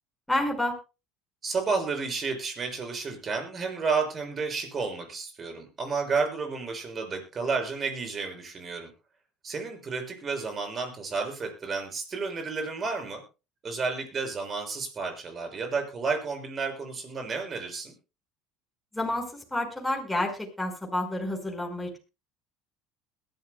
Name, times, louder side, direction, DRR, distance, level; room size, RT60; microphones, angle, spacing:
voice 1, 0.3-0.7 18.9-22.0, left 1 dB, 5° left, 1 dB, 5.1 m, -29 dB
voice 2, 1.4-8.9 9.4-13.2 13.6-17.9, right 4 dB, 35° right, 5 dB, 6.3 m, -31 dB
21.5 x 12.0 x 2.3 m, 0.29 s
supercardioid pair, 90°, 0 cm